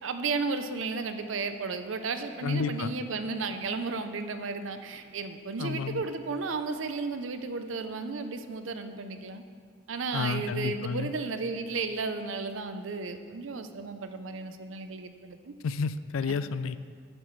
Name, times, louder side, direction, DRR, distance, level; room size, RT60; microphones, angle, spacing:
voice 1, 0.0-9.4 9.9-15.5 16.2-16.4, right 4 dB, 70° right, 8 dB, 0.6 m, -34 dB
voice 2, 2.4-2.9 5.6-6.0 10.1-11.1 15.6-16.8, left 5 dB, 90° left, 14 dB, 0.4 m, -30 dB
15.0 x 7.6 x 3.2 m, 2.1 s
head